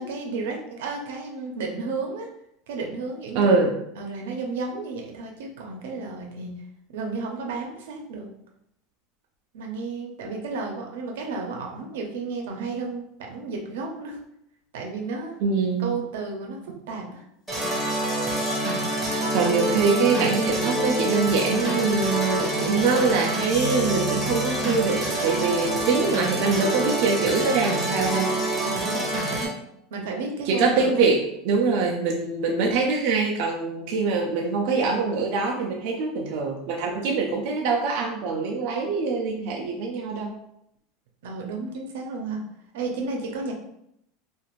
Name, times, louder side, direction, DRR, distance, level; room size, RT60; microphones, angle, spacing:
voice 1, 0.0-2.3 2.7-3.6 3.9-6.5 6.9-8.3 9.5-14.2 14.7-15.4 15.8-16.6 16.9-17.2 28.6-29.0 29.3-29.5 29.9-31.1 41.2-42.4 42.7-43.5, right 3 dB, 90° right, 1 dB, 0.6 m, -32 dB
voice 2, 3.3-3.8 15.4-16.0 19.3-28.3 30.5-40.3, right 4 dB, 50° right, 0 dB, 0.3 m, -24 dB
sound 1, 17.5-18.6, left 3 dB, 35° left, 0.6 m, -42 dB
sound 2, 17.5-29.5, right 1 dB, 5° right, 0.6 m, -26 dB
2.4 x 2.4 x 3.0 m, 0.77 s
supercardioid pair, 175°, 0 cm